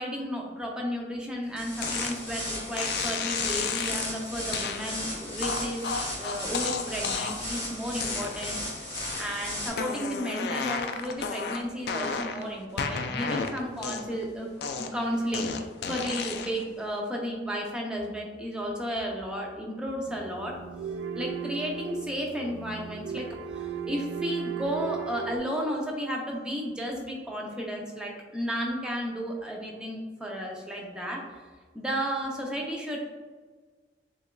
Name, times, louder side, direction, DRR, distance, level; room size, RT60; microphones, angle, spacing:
voice 1, 0.0-5.8 6.1-14.5 14.9-15.5 15.9-20.5 20.8-20.9 21.1-31.2 31.7-33.0, equal, 5° right, -1 dB, 0.5 m, -33 dB
sound 1, 1.6-9.7, left 1 dB, 25° left, 1.4 m, -35 dB
sound 2, 1.8-2.2 2.8-4.1 4.5-4.8 5.4-7.5 8.0-8.6 9.0-9.4 9.7-12.4 12.8-14.2 14.6-16.6, left 5 dB, 60° left, 0.3 m, -32 dB
sound 3, 20.1-25.4, right 6 dB, 90° right, 0.4 m, -36 dB
6.7 x 2.3 x 2.2 m, 1.4 s
head